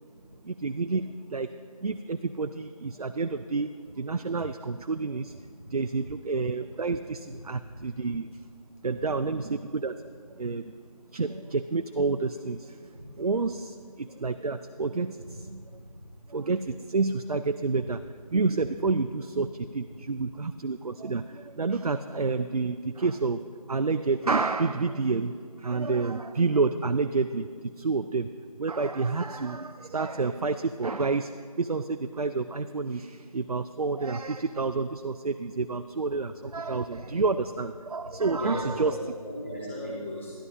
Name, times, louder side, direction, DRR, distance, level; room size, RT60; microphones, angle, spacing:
voice 1, 0.4-1.5 1.8-3.7 4.0-5.4 5.7-8.4 8.8-10.1 10.4-10.6 11.1-12.8 13.2-15.6 16.3-18.0 18.3-23.4 23.7-28.3 28.6-31.3 31.6-39.0, right 4 dB, 85° right, 9 dB, 0.4 m, -29 dB
voice 2, 38.4-40.3, left 1 dB, 20° left, -9 dB, 1.1 m, -35 dB
12.5 x 11.5 x 2.6 m, 2.2 s
figure-of-eight pair, 170°, 19 cm